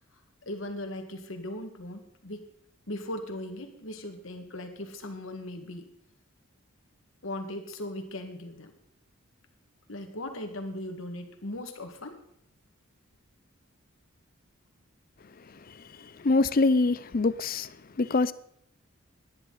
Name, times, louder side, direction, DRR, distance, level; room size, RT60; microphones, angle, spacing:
voice 1, 0.1-2.5 2.9-5.9 7.2-8.7 9.9-12.2 15.9-16.0, left 1 dB, 70° left, 1.9 m, -38 dB
voice 2, 15.7-18.3, left 3 dB, 45° left, 0.5 m, -25 dB
18.0 x 11.0 x 4.1 m
head